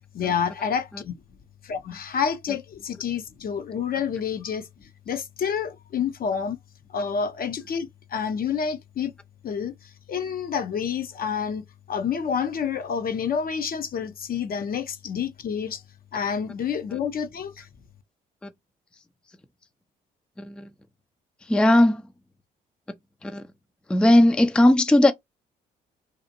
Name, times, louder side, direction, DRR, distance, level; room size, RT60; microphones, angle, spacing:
voice 1, 0.1-1.2 1.6-6.6 6.9-9.1 9.4-15.8 16.1-17.7, left 7 dB, 45° left, 0.7 m, -29 dB
voice 2, 20.4-20.7 21.5-22.0 23.2-23.4 23.9-25.1, left 1 dB, 5° left, 0.4 m, -18 dB
2.8 x 2.4 x 2.6 m
hypercardioid pair, 55°, 20 cm